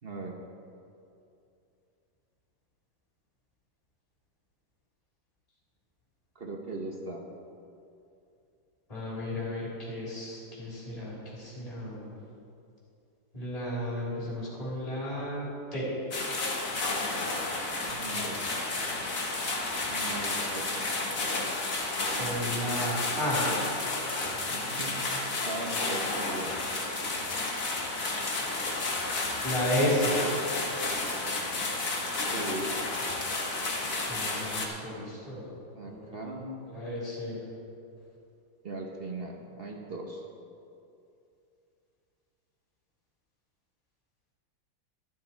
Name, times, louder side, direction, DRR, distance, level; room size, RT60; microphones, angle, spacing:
voice 1, 0.0-0.4 6.3-7.2 17.9-18.4 19.9-20.7 24.5-26.6 32.2-32.8 35.7-36.7 38.6-40.3, right 2 dB, 40° right, 1 dB, 1.0 m, -39 dB
voice 2, 8.9-12.1 13.3-15.9 22.1-23.5 29.4-30.2 34.1-35.5 35.8-36.0 36.7-37.4, left 1 dB, 20° left, -6 dB, 3.5 m, -33 dB
sound 1, 16.1-34.7, left 2 dB, 45° left, 1.8 m, -31 dB
13.0 x 12.0 x 4.5 m, 2.6 s
omnidirectional pair, 2.1 m